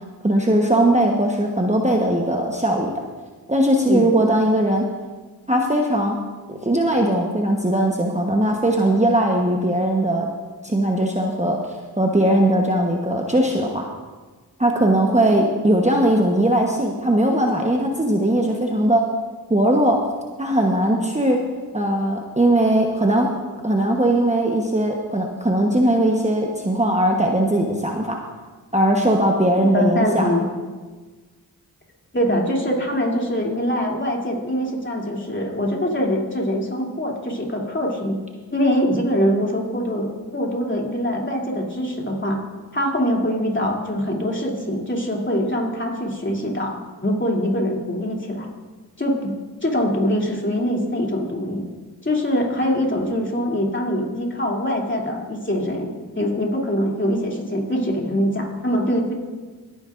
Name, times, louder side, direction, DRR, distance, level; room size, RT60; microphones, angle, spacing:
voice 1, 0.2-2.9 3.5-4.8 5.5-6.2 6.5-10.3 10.6-11.6 12.0-13.9 14.6-19.0 19.5-20.0 20.4-21.4 21.7-23.3 23.6-28.2 28.7-30.3, right 1 dB, 20° right, 0 dB, 1.1 m, -19 dB
voice 2, 29.6-30.5 32.1-38.2 38.5-40.1 40.3-42.4 42.7-46.7 47.0-48.5 49.0-49.3 49.6-51.6 52.0-59.1, equal, 30° left, -2 dB, 2.9 m, -23 dB
21.0 x 9.7 x 2.6 m, 1.4 s
cardioid pair, 45°, 39 cm